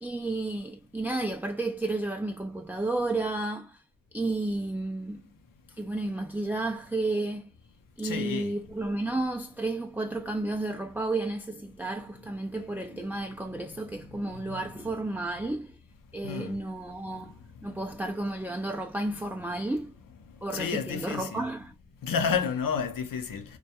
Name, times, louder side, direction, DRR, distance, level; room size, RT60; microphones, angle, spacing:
voice 1, 0.0-3.8 4.1-5.2 5.7-7.5 8.0-15.8 16.1-17.4 17.6-19.9 20.4-21.7, right 2 dB, 5° right, 0.3 m, -32 dB
voice 2, 8.0-8.5 12.9-13.0 13.5-13.8 14.1-14.7 16.2-16.6 17.0-17.8 20.3-21.5 22.0-23.6, left 6 dB, 75° left, 0.7 m, -32 dB
2.2 x 2.2 x 2.7 m
cardioid pair, 45°, 33 cm